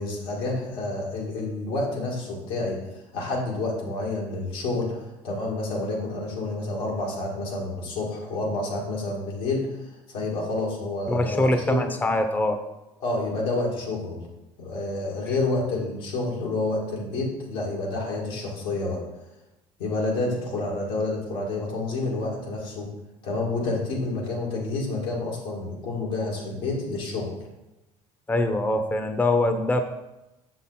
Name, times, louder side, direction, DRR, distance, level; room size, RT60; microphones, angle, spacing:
voice 1, 0.0-2.8 3.1-9.7 10.1-11.9 13.0-14.2 14.6-19.0 19.8-22.9 23.2-27.3, left 2 dB, 85° left, -3 dB, 2.3 m, -29 dB
voice 2, 11.1-12.6 28.3-29.8, left 1 dB, 15° left, 7 dB, 0.7 m, -23 dB
6.6 x 5.9 x 4.2 m, 0.95 s
supercardioid pair, 85°, 13 cm